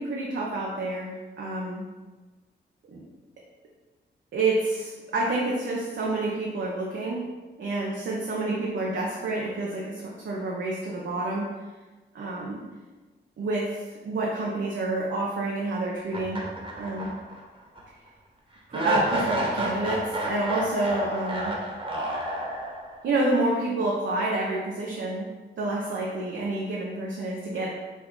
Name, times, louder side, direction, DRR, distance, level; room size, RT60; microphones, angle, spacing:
voice 1, 0.0-1.8 2.9-3.0 4.3-7.2 7.6-11.5 12.1-12.6 13.4-16.4 16.8-17.1 18.7-21.5 23.0-25.3 25.6-27.7, right 2 dB, 70° right, -3 dB, 0.7 m, -28 dB
sound 1, 16.1-17.4 17.8-17.9 18.7-23.0, right 1 dB, 25° right, 1.2 m, -30 dB
4.9 x 2.5 x 3.8 m, 1.3 s
cardioid pair, 55°, 20 cm